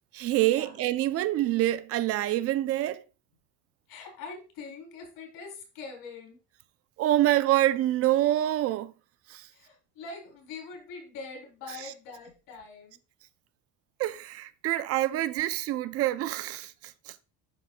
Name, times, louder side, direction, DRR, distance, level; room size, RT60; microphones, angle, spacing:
voice 1, 0.1-3.0 7.0-8.9 9.3-9.5 11.8-11.9 14.0-17.1, right 14 dB, 40° right, 0.4 m, -26 dB
voice 2, 3.9-6.4 9.5-13.0, left 4 dB, 65° left, 3.2 m, -43 dB
11.5 x 4.1 x 2.2 m
cardioid pair, 160°, 36 cm